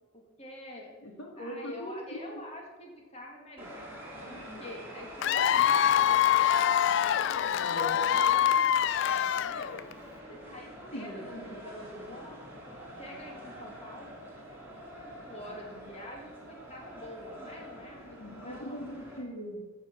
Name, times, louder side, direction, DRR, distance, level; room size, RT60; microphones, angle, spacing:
voice 1, 0.1-1.0 1.4-3.8 4.3-9.8 10.3-14.3 15.0-18.8, left 1 dB, 30° left, 0 dB, 2.1 m, -47 dB
voice 2, 1.0-2.2 7.6-8.0 10.8-11.5 18.2-19.6, equal, 90° left, 1 dB, 2.4 m, -40 dB
sound 1, 3.6-19.2, equal, 10° right, 3.2 m, -46 dB
Cheering / Applause / Crowd, 5.2-9.9, left 9 dB, 60° left, 0.3 m, -25 dB
14.5 x 6.8 x 6.0 m, 1.4 s
head